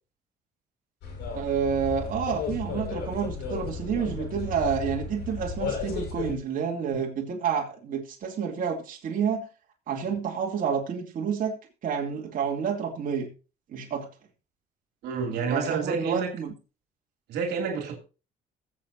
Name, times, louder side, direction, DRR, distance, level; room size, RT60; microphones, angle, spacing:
sound 1, 1.0-6.3, left 5 dB, 75° left, 5.8 m, -34 dB
voice 1, 1.3-9.5 9.9-11.6 11.8-13.3 13.7-14.1 15.5-16.5, right 7 dB, 55° right, 2.7 m, -29 dB
voice 2, 15.0-16.3 17.3-18.0, right 5 dB, 75° right, 2.7 m, -29 dB
21.5 x 7.7 x 2.7 m
cardioid pair, 110°, 17 cm